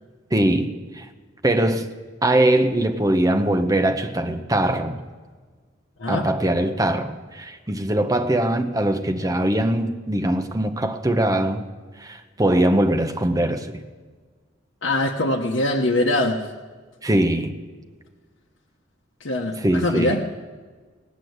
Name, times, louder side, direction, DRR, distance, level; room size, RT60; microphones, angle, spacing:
voice 1, 0.3-1.1 1.4-1.9 2.2-5.0 6.1-11.7 12.0-13.8 17.0-17.5 19.6-20.2, right 1 dB, 20° right, 6 dB, 0.9 m, -21 dB
voice 2, 14.8-16.5 19.2-20.2, left 1 dB, 70° left, -1 dB, 1.0 m, -22 dB
18.5 x 8.3 x 7.9 m, 1.4 s
head